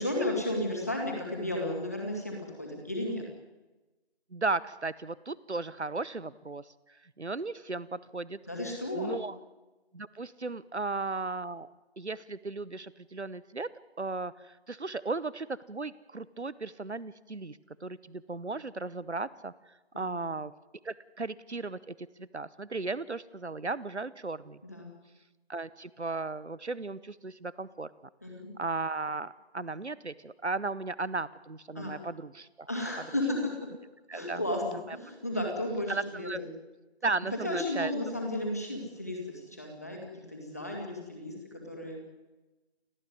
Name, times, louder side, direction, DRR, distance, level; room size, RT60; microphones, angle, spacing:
voice 1, 0.0-3.3 8.5-9.2 19.9-20.1 24.6-24.9 28.2-28.5 31.7-31.9 32.7-33.5 34.1-36.5 37.4-41.3 41.6-42.0, left 1 dB, 15° left, 0 dB, 2.3 m, -33 dB
voice 2, 4.3-8.4 8.9-9.4 9.9-13.7 14.0-20.5 20.8-24.6 25.5-27.9 28.6-32.7 34.1-34.4 34.7-35.0 35.9-36.4 37.0-37.9, right 3 dB, 85° right, 19 dB, 1.0 m, -36 dB
29.5 x 10.0 x 9.4 m, 1.1 s
figure-of-eight pair, 170°, 33 cm